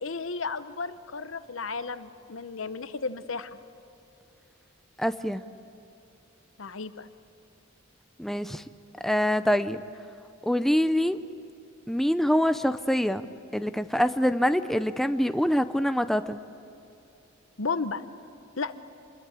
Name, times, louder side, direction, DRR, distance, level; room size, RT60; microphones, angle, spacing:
voice 1, 0.0-3.6 6.6-7.1 17.6-18.0 18.6-18.8, left 4 dB, 85° left, 12 dB, 1.0 m, -33 dB
voice 2, 5.0-5.4 8.2-8.6 9.0-9.8 10.4-11.2 11.9-13.3 13.5-16.4, equal, ahead, 10 dB, 0.5 m, -25 dB
27.0 x 21.5 x 8.4 m, 2.8 s
head